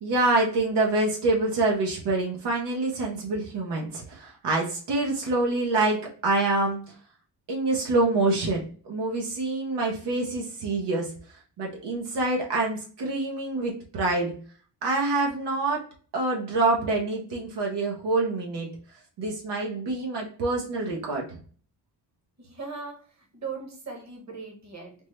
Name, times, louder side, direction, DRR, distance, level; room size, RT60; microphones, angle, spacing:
voice 1, 0.0-6.8 7.5-11.1 11.6-14.3 14.8-15.8 16.1-18.7 19.2-21.4, right 2 dB, 85° right, -1 dB, 0.8 m, -26 dB
voice 2, 22.4-23.0 23.3-25.1, right 4 dB, 40° right, 2 dB, 1.1 m, -39 dB
3.5 x 2.1 x 3.0 m, 0.43 s
cardioid pair, 75°, 41 cm